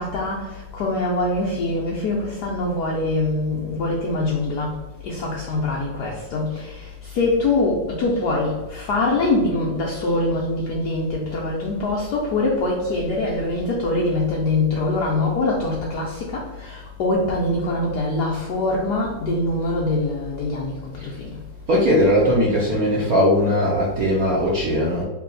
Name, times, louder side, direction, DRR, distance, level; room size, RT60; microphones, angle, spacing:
voice 1, 0.0-4.7 5.0-6.9 7.1-20.8 21.0-21.3, left 2 dB, 75° left, -3 dB, 0.9 m, -23 dB
voice 2, 21.7-25.0, equal, 65° right, -5 dB, 0.9 m, -19 dB
3.3 x 2.8 x 3.8 m, 1.1 s
omnidirectional pair, 2.3 m